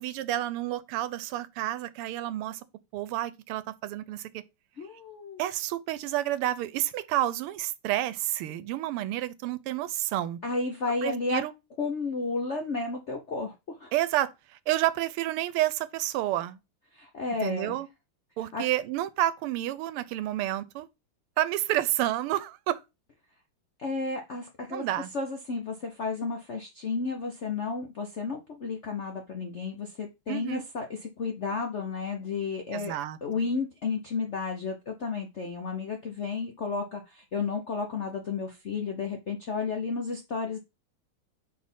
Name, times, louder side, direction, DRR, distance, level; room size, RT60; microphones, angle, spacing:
voice 1, 0.0-2.6 2.9-4.4 5.4-10.4 11.0-11.5 13.9-14.3 14.7-16.6 17.4-17.9 18.4-20.9 21.4-22.8 24.7-25.1 30.3-30.6 32.7-33.2, right 14 dB, 85° right, 1.5 m, -30 dB
voice 2, 4.8-5.5 10.4-11.4 11.8-13.5 13.8-13.9 16.9-17.8 18.5-18.6 23.8-24.9 25.1-32.9 33.2-40.6, left 4 dB, 65° left, 0.7 m, -32 dB
4.9 x 4.1 x 5.4 m
omnidirectional pair, 2.4 m